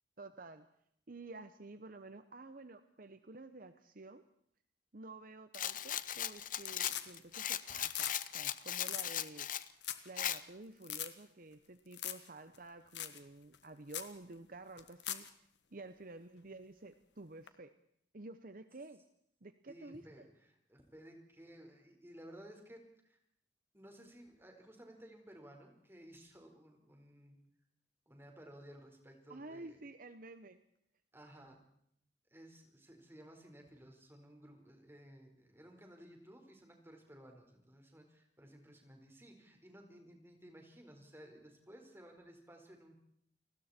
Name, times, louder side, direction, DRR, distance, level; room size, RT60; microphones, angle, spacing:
voice 1, 0.2-0.6 1.1-4.2 4.9-9.5 10.0-17.7 18.1-19.0 19.4-20.3 29.3-30.6, right 2 dB, 50° right, 10 dB, 1.0 m, -51 dB
Rattle, 5.5-9.7 10.2-10.4, left 10 dB, 45° left, 0.9 m, -38 dB
sound 1, 5.8-6.2 6.5-7.4 7.7-8.2 8.4-8.5 8.8-9.1 9.5-9.6 9.8-10.1 10.4-10.5 10.8-11.1 11.9-12.3 12.5-12.6 12.9-13.2 13.5-13.6 13.9-14.1 14.8-15.3 17.5-17.6, left 12 dB, 75° left, 1.6 m, -41 dB
voice 2, 19.7-23.2 23.7-27.4 28.1-29.8 31.1-31.6 32.3-42.9, equal, 15° right, 2 dB, 4.8 m, -56 dB
29.5 x 20.0 x 4.5 m, 0.70 s
head